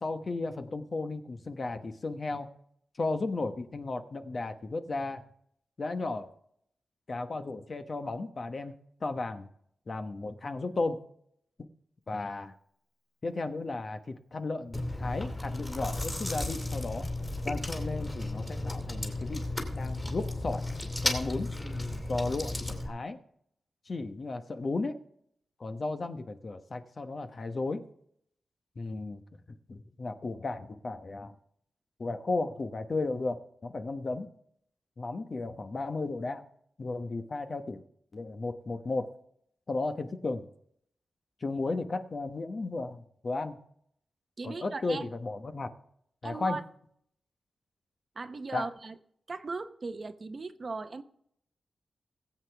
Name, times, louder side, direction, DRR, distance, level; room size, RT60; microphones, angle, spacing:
voice 1, 0.0-2.5 3.0-5.2 5.8-6.3 7.1-8.7 9.0-9.5 9.9-11.0 12.1-12.5 13.2-17.1 17.4-19.4 19.7-20.6 21.0-21.5 22.1-23.2 23.9-25.0 25.6-27.8 28.8-29.2 29.7-31.3 32.0-34.3 35.0-36.4 36.8-37.8 38.1-39.1 39.7-40.5 41.4-43.6 44.4-45.7 46.2-46.6 48.5-48.7, left 3 dB, 45° left, 1.0 m, -34 dB
Chewing mastication, 14.7-22.9, left 2 dB, 15° left, 2.7 m, -34 dB
voice 2, 44.4-45.1 46.2-46.6 48.2-48.9 49.3-51.0, right 3 dB, 45° right, 0.8 m, -37 dB
20.5 x 8.0 x 3.4 m
wide cardioid pair, 105°, 0 cm